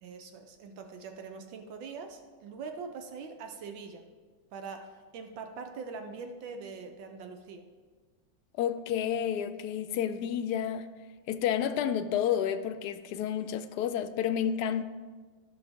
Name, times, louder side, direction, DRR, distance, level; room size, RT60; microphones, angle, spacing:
voice 1, 0.0-4.1 4.5-7.7, right 5 dB, 85° right, 1.5 m, -43 dB
voice 2, 8.5-10.9 11.3-14.8, left 9 dB, 75° left, 1.0 m, -30 dB
14.5 x 5.9 x 3.5 m
omnidirectional pair, 2.0 m